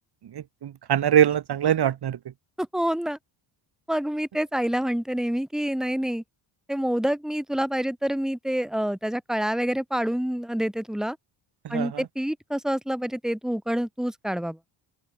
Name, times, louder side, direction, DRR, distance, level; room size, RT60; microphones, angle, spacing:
voice 1, 0.3-2.2 11.6-12.0, right 10 dB, 50° right, 2.3 m, -23 dB
voice 2, 2.6-3.2 3.9-6.2 6.7-11.2 11.7-14.6, equal, ahead, 3.0 m, -27 dB
open air
cardioid pair, 120°, 48 cm